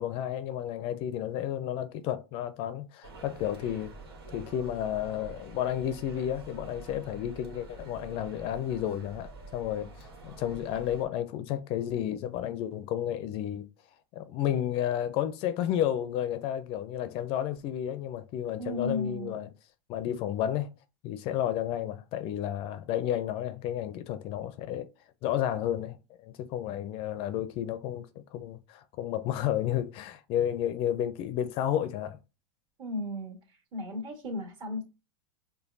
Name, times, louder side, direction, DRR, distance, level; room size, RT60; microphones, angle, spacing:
voice 1, 0.0-3.9 4.3-13.7 14.1-19.5 19.9-20.7 21.0-24.9 25.2-32.2, left 11 dB, 45° left, 0.4 m, -32 dB
sound 1, 3.0-11.1, right 3 dB, 85° right, 1.2 m, -47 dB
voice 2, 18.6-19.4 32.8-33.4 33.7-34.8, left 2 dB, 35° right, 1.8 m, -34 dB
5.0 x 2.2 x 2.6 m
hypercardioid pair, 100°, 13 cm